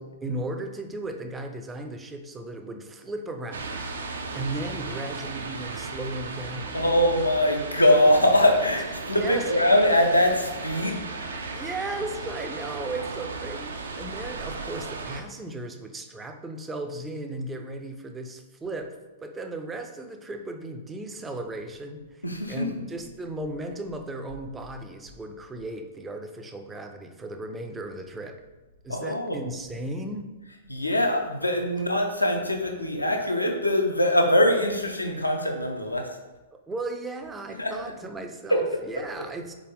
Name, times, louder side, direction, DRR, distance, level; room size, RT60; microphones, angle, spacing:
voice 1, 0.0-3.9 4.3-6.8 9.2-9.5 11.5-28.4 28.8-30.3 36.7-39.5, right 2 dB, 15° right, 6 dB, 0.4 m, -36 dB
sound 1, 3.5-15.2, right 3 dB, 65° right, 0.5 m, -36 dB
voice 2, 6.7-11.0 22.2-22.8 28.9-29.3 30.7-36.1 37.6-37.7 38.5-38.6, left 1 dB, 90° left, 3 dB, 0.6 m, -22 dB
4.1 x 3.7 x 3.6 m, 1.1 s
figure-of-eight pair, 105°, 0 cm